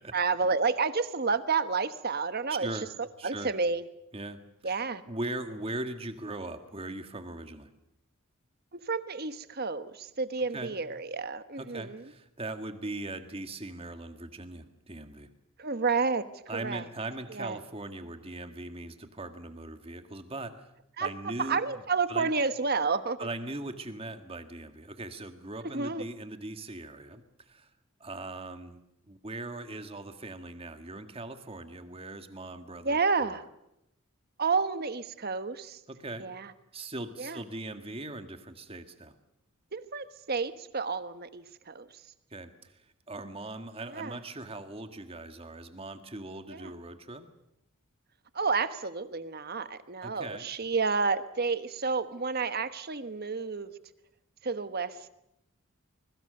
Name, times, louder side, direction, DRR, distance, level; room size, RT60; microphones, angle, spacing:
voice 1, 0.1-2.7 3.2-3.8 4.6-5.0 8.9-12.0 15.6-16.8 17.3-17.6 21.0-21.1 21.4-23.3 25.7-26.0 32.8-33.4 34.4-35.8 36.2-36.5 37.2-37.4 39.7-41.8 43.9-44.2 46.5-46.7 48.3-53.7 54.4-55.1, right 4 dB, 45° right, 12 dB, 1.2 m, -30 dB
voice 2, 3.2-3.5 4.1-7.7 10.5-10.8 11.6-15.3 16.5-20.7 21.0-21.8 22.1-22.3 23.2-27.7 28.0-33.4 35.9-36.3 36.7-39.1 42.3-47.3 50.0-50.5, right 2 dB, 25° right, 8 dB, 1.7 m, -40 dB
25.0 x 22.0 x 6.8 m, 0.83 s
head